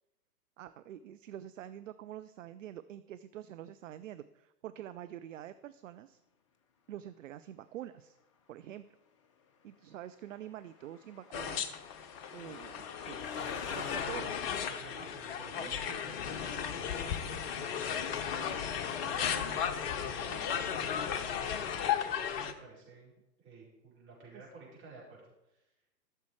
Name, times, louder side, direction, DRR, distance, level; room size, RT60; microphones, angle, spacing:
voice 1, 0.6-6.2 6.9-8.2 8.5-8.8 9.6-11.7 12.3-13.4 13.7-14.3 15.6-15.7 16.3-16.4 24.3-24.4, right 11 dB, 50° right, 12 dB, 0.6 m, -46 dB
Truck, 9.9-14.0, left 6 dB, 20° left, 0.4 m, -47 dB
sound 1, 11.3-22.5, left 8 dB, 35° left, 1.0 m, -35 dB
voice 2, 13.3-14.4 14.7-21.7 22.0-23.1 23.4-25.2 25.5-25.7, right 4 dB, 25° right, -5 dB, 4.8 m, -52 dB
13.5 x 6.8 x 4.8 m, 0.92 s
figure-of-eight pair, 110°, 49 cm